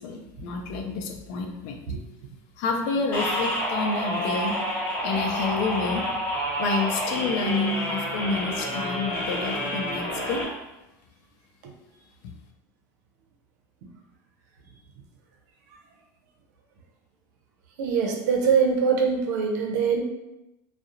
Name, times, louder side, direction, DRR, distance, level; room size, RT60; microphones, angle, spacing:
voice 1, 0.0-1.8 2.6-4.6 5.0-6.1 6.6-10.4, left 4 dB, 65° left, 3 dB, 0.4 m, -29 dB
sound 1, 3.1-10.4, equal, 20° left, 1.2 m, -29 dB
voice 2, 17.8-20.0, right 6 dB, 75° right, 2 dB, 0.5 m, -23 dB
2.3 x 2.0 x 2.8 m, 0.94 s
supercardioid pair, 105°, 10 cm